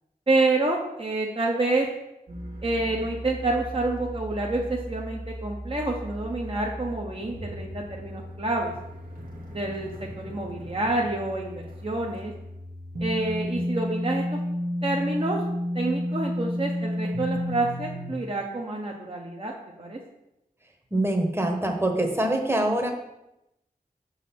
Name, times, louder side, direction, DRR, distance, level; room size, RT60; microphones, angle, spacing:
voice 1, 0.3-1.9 2.6-8.7 9.5-12.3 13.0-14.4 14.8-15.4 15.7-19.5 19.8-20.0, right 2 dB, 35° right, -1 dB, 0.9 m, -28 dB
sound 1, 2.3-18.1, equal, 65° right, 1.3 m, -33 dB
voice 2, 20.9-22.9, right 1 dB, 15° right, 3 dB, 1.1 m, -24 dB
6.2 x 4.0 x 5.8 m, 0.88 s
wide cardioid pair, 60°, 15 cm